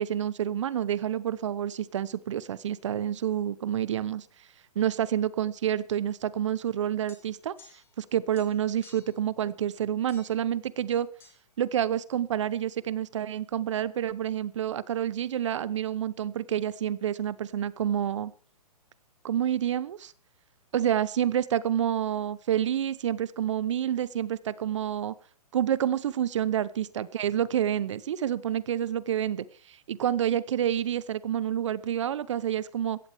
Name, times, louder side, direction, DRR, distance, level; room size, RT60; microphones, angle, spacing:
voice 1, 0.0-4.3 4.8-7.5 8.0-11.1 11.6-18.3 19.2-20.1 20.7-25.1 25.5-33.0, right 10 dB, 50° right, 19 dB, 0.8 m, -28 dB
sound 1, 7.1-8.1 8.3-9.2 10.1-10.5 11.2-11.4, left 4 dB, 10° left, 2.9 m, -55 dB
16.5 x 14.5 x 3.5 m, 0.43 s
hypercardioid pair, 160°, 20 cm